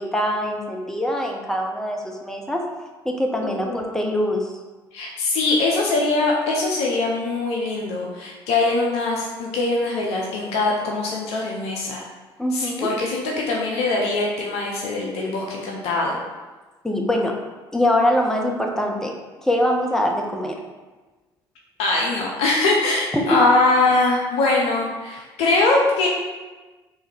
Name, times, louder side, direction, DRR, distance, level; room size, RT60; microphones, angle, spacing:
voice 1, 0.0-2.6 3.0-4.5 5.2-5.3 12.4-12.9 16.8-17.4 17.7-19.1 19.4-20.6 23.1-23.2, left 1 dB, 5° left, 1 dB, 0.5 m, -23 dB
voice 2, 3.6-4.0 4.9-12.0 12.5-16.2 21.8-26.1, left 2 dB, 55° left, -1 dB, 0.6 m, -22 dB
3.4 x 2.6 x 3.3 m, 1.2 s
figure-of-eight pair, 55°, 13 cm